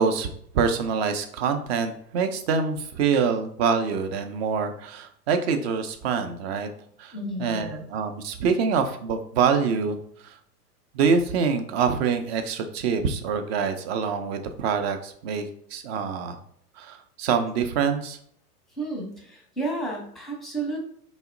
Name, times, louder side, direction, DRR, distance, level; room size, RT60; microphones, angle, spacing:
voice 1, 0.0-6.7 7.0-10.0 10.2-10.4 10.9-16.4 16.8-18.2, right 6 dB, 45° right, 7 dB, 0.5 m, -25 dB
voice 2, 7.1-7.9 18.8-20.8, right 2 dB, ahead, 0 dB, 0.7 m, -32 dB
2.9 x 2.1 x 3.7 m, 0.65 s
hypercardioid pair, 100°, 47 cm